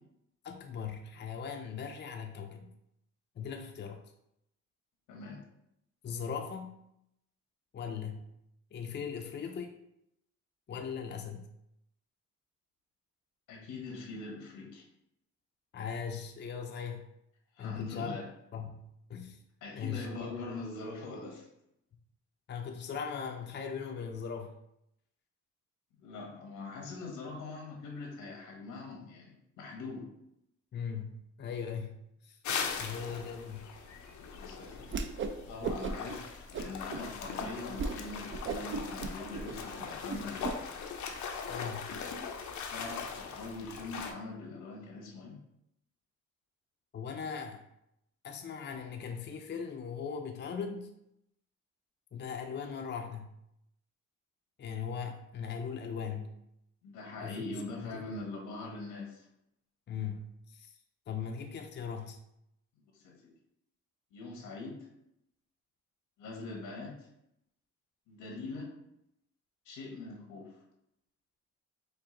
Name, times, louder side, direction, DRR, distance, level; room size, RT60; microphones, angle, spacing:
voice 1, 0.4-2.7 3.4-4.0 6.0-6.7 7.7-8.2 8.7-9.7 10.7-11.5 15.7-17.0 17.6-18.2 18.5-19.4 19.7-20.3 22.5-24.5 30.7-32.4 32.8-33.7 41.5-41.9 46.9-47.6 48.2-50.9 52.1-53.3 54.6-56.3 57.2-58.2 59.9-60.8 61.1-62.2, left 6 dB, 35° left, 4 dB, 0.5 m, -39 dB
voice 2, 5.1-5.4 13.5-14.9 17.5-18.3 19.6-21.5 26.0-30.1 32.9-33.2 34.3-34.8 35.5-40.6 42.7-45.4 56.8-59.3 62.9-63.3 64.1-64.9 66.2-67.1 68.1-68.7 69.6-70.6, left 3 dB, 90° left, 0 dB, 1.3 m, -43 dB
sound 1, 32.4-44.1, left 6 dB, 70° left, 0.7 m, -40 dB
Whoosh swoosh swish, 34.8-35.4 35.6-36.2 36.5-37.0 37.4-37.5 37.8-38.0 38.3-40.6, right 4 dB, 40° right, 0.5 m, -36 dB
4.8 x 2.6 x 3.8 m, 0.79 s
cardioid pair, 90°, 30 cm